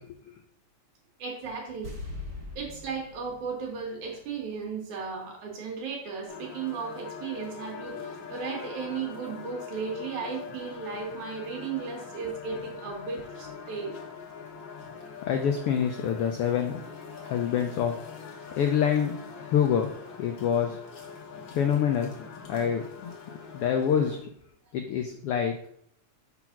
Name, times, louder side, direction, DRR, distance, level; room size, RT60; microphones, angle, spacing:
voice 1, 1.2-1.9 2.6-14.0, right 5 dB, 85° right, 0 dB, 3.1 m, -35 dB
sound 1, 1.8-5.0 5.3-5.4, left 2 dB, 40° right, 1.5 m, -43 dB
sound 2, 6.3-24.2, left 6 dB, 55° left, 1.5 m, -43 dB
voice 2, 15.3-16.8 17.2-18.0 18.5-19.2 19.5-19.9 20.2-20.8 21.6-22.1 22.5-23.1 23.5-24.2 24.7-25.6, left 8 dB, 85° left, 4 dB, 1.2 m, -26 dB
5.8 x 4.0 x 5.8 m, 0.69 s
omnidirectional pair, 3.3 m